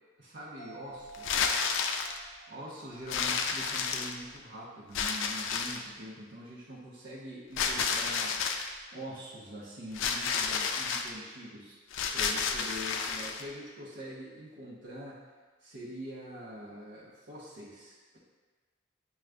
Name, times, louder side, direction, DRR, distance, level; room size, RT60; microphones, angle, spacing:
voice 1, 0.2-1.6 2.5-11.8 12.1-15.2 15.6-18.2, equal, 70° right, -9 dB, 0.7 m, -44 dB
sound 1, 0.6-4.3 4.6-4.7, right 3 dB, 30° left, 1.4 m, -53 dB
sound 2, 1.1-2.2 3.1-4.4 4.9-5.9 7.6-8.7 9.9-11.1 11.9-13.4, left 5 dB, 80° left, 0.3 m, -31 dB
6.2 x 2.3 x 2.2 m, 1.4 s
head